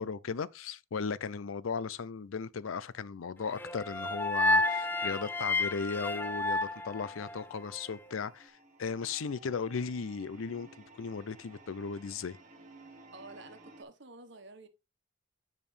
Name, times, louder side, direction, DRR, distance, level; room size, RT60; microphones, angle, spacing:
voice 1, 0.0-12.4, left 5 dB, 80° left, 0.5 m, -36 dB
sound 1, 3.6-7.8, left 2 dB, 10° left, 0.5 m, -31 dB
sound 2, 6.8-13.8, right 2 dB, 35° right, 1.6 m, -56 dB
voice 2, 13.1-14.7, right 3 dB, 60° right, 1.2 m, -50 dB
9.2 x 5.2 x 3.3 m
head